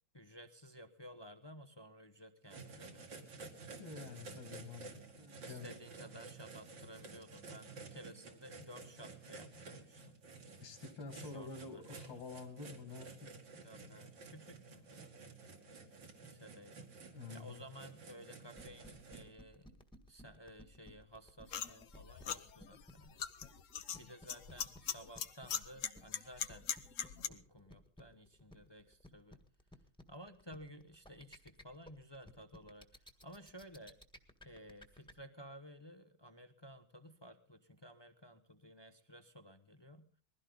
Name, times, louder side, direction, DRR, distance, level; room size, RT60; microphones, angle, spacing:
voice 1, 0.1-3.5 5.4-10.2 10.5-10.6 11.2-12.2 13.6-15.5 16.2-16.9 17.3-19.8 20.1-23.3 23.9-26.7 27.2-29.4 30.1-34.0 34.4-40.2, equal, 25° left, 7 dB, 0.5 m, -55 dB
sound 1, 2.5-19.2, right 4 dB, 65° right, 2.9 m, -53 dB
voice 2, 3.8-4.9 5.2-5.8 10.6-13.1 17.1-17.6, left 4 dB, 70° left, 3 dB, 3.1 m, -48 dB
sound 2, 18.6-35.1, equal, 5° left, 1.3 m, -57 dB
sound 3, 21.5-27.3, left 8 dB, 55° left, 0.9 m, -41 dB
21.0 x 16.0 x 4.0 m, 0.43 s
omnidirectional pair, 2.2 m